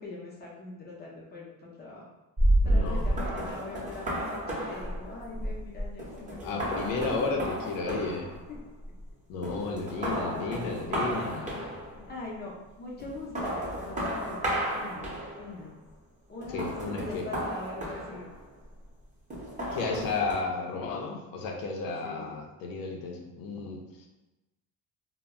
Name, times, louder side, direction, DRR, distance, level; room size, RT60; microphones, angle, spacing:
voice 1, 0.0-2.1 2.6-6.9 8.5-8.6 11.9-14.5 14.7-15.8 16.3-18.3 21.9-22.4, left 3 dB, 30° left, -4 dB, 0.5 m, -42 dB
sound 1, 2.4-9.1 9.4-12.1 13.0-15.6 16.4-18.6 19.3-20.4, right 1 dB, 20° right, 0.7 m, -32 dB
voice 2, 2.6-3.2 5.3-5.4 6.4-8.3 9.3-11.7 16.5-17.3 19.7-24.1, left 4 dB, 90° left, 1 dB, 0.5 m, -33 dB
2.2 x 2.0 x 3.5 m, 1.0 s
cardioid pair, 125°, 34 cm